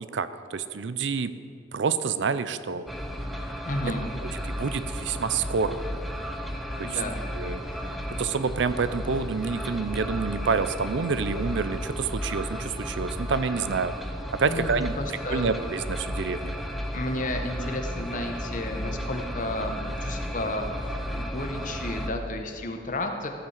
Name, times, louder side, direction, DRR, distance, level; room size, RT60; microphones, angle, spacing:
voice 1, 0.1-1.3 1.7-2.8 4.6-5.8 6.8-7.0 7.4-7.6 8.2-13.9 14.4-14.9 15.3-16.6, right 5 dB, 70° right, 13 dB, 0.5 m, -28 dB
sound 1, 2.9-22.1, equal, ahead, 0.6 m, -34 dB
voice 2, 3.6-4.0 6.8-7.2 7.6-7.9 14.5-15.5 16.9-23.3, left 1 dB, 45° left, 4 dB, 1.0 m, -32 dB
14.5 x 5.7 x 7.3 m, 2.4 s
head